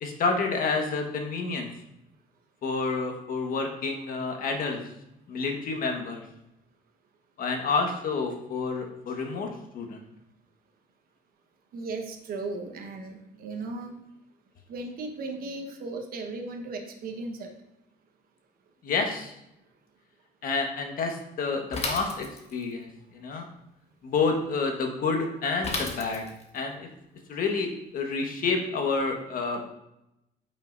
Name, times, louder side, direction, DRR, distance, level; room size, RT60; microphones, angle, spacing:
voice 1, 0.0-1.7 2.6-4.8 5.3-6.2 7.4-9.5 9.7-10.0 18.8-19.3 20.4-22.2 22.5-23.4 24.0-26.3 26.5-26.9 27.3-29.6, left 4 dB, 55° left, 3 dB, 1.3 m, -29 dB
voice 2, 11.7-14.0 14.7-17.5, right 3 dB, 60° right, 3 dB, 1.1 m, -36 dB
Bicycle / Mechanisms, 21.7-22.7 25.6-26.6, left 2 dB, 40° left, 1.3 m, -33 dB
8.7 x 5.6 x 2.6 m, 0.85 s
cardioid pair, 110°, 17 cm